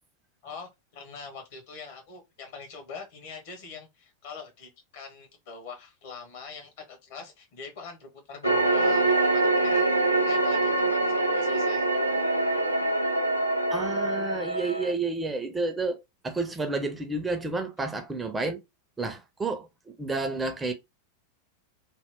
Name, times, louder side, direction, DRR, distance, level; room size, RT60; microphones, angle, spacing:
voice 1, 0.4-11.9 17.8-17.9, left 5 dB, 50° left, 1.1 m, -43 dB
sound 1, 8.4-14.9, right 2 dB, 90° right, 0.4 m, -24 dB
voice 2, 13.7-16.0 16.2-18.6 19.0-19.7 20.0-20.7, right 3 dB, 10° right, 0.5 m, -30 dB
2.8 x 2.0 x 3.6 m
figure-of-eight pair, 90°, 0 cm